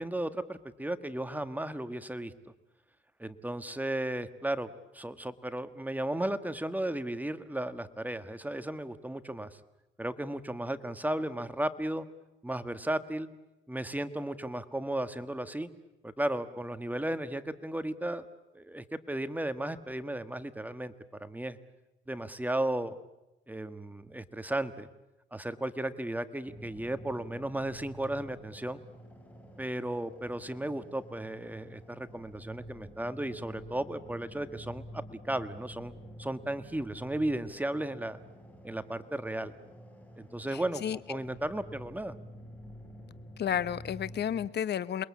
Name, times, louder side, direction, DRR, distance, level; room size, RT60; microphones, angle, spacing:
voice 1, 0.0-2.3 3.2-4.7 4.9-9.6 10.0-12.1 12.4-13.3 13.7-15.7 16.0-18.3 18.5-20.9 21.2-21.6 22.1-23.0 23.5-24.9 25.3-28.8 29.6-35.9 36.2-38.2 38.6-39.5 40.2-40.8 41.1-42.1, right 1 dB, 10° right, 11 dB, 1.5 m, -35 dB
sound 1, 26.5-44.5, equal, 5° left, 6.1 m, -49 dB
voice 2, 40.5-41.2 43.4-45.0, left 9 dB, 60° left, 17 dB, 1.1 m, -32 dB
28.5 x 21.5 x 8.5 m, 0.97 s
cardioid pair, 90°, 20 cm